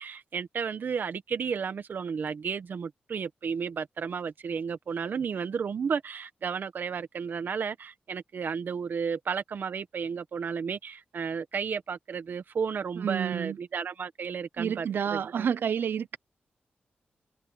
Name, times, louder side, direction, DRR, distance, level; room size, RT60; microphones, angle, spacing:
voice 1, 0.0-15.5, right 6 dB, 65° right, 1.2 m, -33 dB
voice 2, 13.0-13.6 14.6-16.2, right 8 dB, 90° right, 0.8 m, -29 dB
wide cardioid pair, 140°, 4 cm